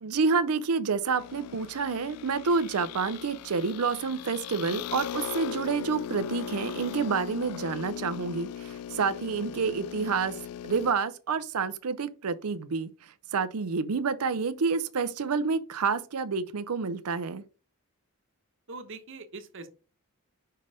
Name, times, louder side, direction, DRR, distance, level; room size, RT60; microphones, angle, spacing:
voice 1, 0.0-10.4 10.6-12.9 13.3-17.4, right 5 dB, 85° right, 0.6 m, -28 dB
sound 1, 1.2-10.9, left 10 dB, 85° left, 0.3 m, -39 dB
voice 2, 18.7-19.7, right 3 dB, 60° right, 1.1 m, -42 dB
5.5 x 5.4 x 5.0 m
head